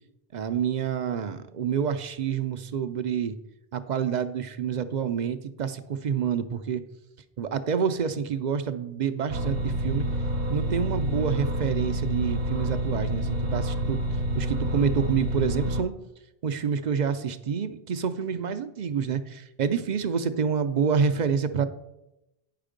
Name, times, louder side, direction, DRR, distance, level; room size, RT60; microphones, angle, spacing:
voice 1, 0.3-3.4 3.7-6.8 7.4-10.1 10.5-14.0 14.3-15.9 16.4-21.7, right 7 dB, 55° right, 11 dB, 0.6 m, -28 dB
sound 1, 9.3-15.8, right 1 dB, 70° right, 1.1 m, -28 dB
9.1 x 5.8 x 5.1 m, 0.92 s
omnidirectional pair, 1.0 m